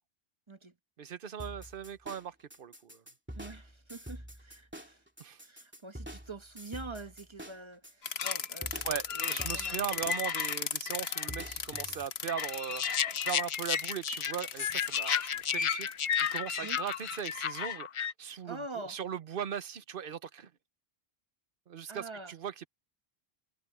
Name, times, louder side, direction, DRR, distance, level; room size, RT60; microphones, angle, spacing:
voice 1, 1.0-3.0 5.2-5.4 8.8-12.8 13.2-17.9 18.2-20.5 21.7-22.7, right 8 dB, 60° right, 1.0 m, -39 dB
sound 1, 1.4-12.1, equal, 10° right, 2.9 m, -46 dB
voice 2, 3.3-5.0 5.4-10.1 16.6-16.8 18.5-19.0 21.9-22.3, right 2 dB, 30° right, 1.2 m, -45 dB
sound 2, 8.0-18.1, left 7 dB, 85° left, 1.2 m, -35 dB
sound 3, 12.8-18.1, left 8 dB, 50° left, 0.3 m, -33 dB
omnidirectional pair, 1.0 m